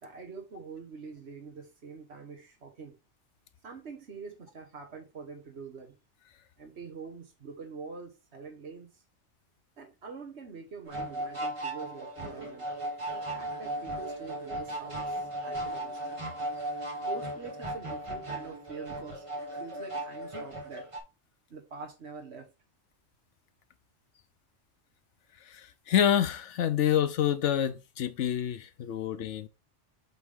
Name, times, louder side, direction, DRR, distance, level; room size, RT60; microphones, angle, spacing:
voice 1, 0.0-3.0 3.6-5.9 6.6-9.0 9.8-12.7 13.1-16.0 17.0-19.2 19.6-20.9 21.5-22.5, right 5 dB, 70° right, 1.8 m, -45 dB
sound 1, 10.9-21.0, right 1 dB, 30° right, 1.6 m, -36 dB
voice 2, 25.9-29.5, left 10 dB, 90° left, 1.1 m, -27 dB
8.0 x 3.6 x 3.6 m
omnidirectional pair, 1.2 m